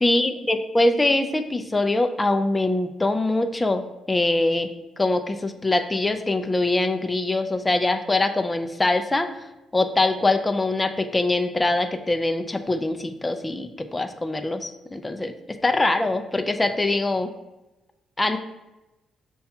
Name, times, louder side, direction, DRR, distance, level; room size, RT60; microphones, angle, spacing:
voice 1, 0.0-4.7 5.0-9.5 9.7-15.3 15.6-17.3 18.2-18.4, left 2 dB, 15° left, 7 dB, 0.4 m, -23 dB
6.7 x 2.3 x 2.7 m, 1.0 s
cardioid pair, 90°, 0 cm